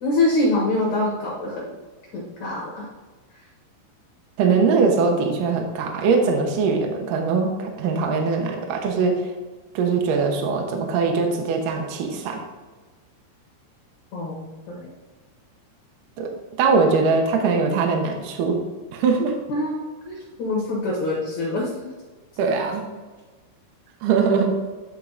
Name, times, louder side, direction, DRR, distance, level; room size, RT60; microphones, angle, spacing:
voice 1, 0.0-1.7 2.1-2.9 14.1-14.9 19.5-21.8, left 2 dB, 80° left, -4 dB, 1.6 m, -25 dB
voice 2, 4.4-9.3 9.7-12.4 16.2-16.3 16.6-18.6 18.9-19.4 22.4-22.8 24.0-24.6, right 4 dB, 90° right, 2 dB, 1.8 m, -21 dB
10.5 x 4.7 x 4.0 m, 1.3 s
omnidirectional pair, 5.5 m